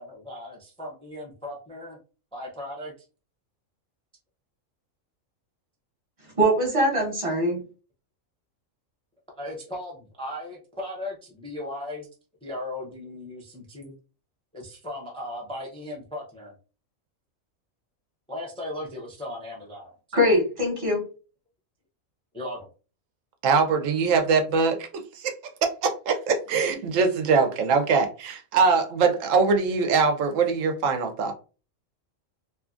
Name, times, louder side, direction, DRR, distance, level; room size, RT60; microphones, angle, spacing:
voice 1, 0.0-2.0 2.3-2.9 9.4-12.1 12.4-13.9 14.5-16.5 18.3-20.3 22.3-22.7, left 1 dB, 5° left, -2 dB, 0.4 m, -37 dB
voice 2, 6.4-7.6 20.1-21.0, equal, 25° right, 0 dB, 1.0 m, -22 dB
voice 3, 23.4-25.3 25.6-31.3, right 5 dB, 80° right, 6 dB, 1.0 m, -22 dB
2.7 x 2.4 x 2.4 m, 0.35 s
omnidirectional pair, 1.4 m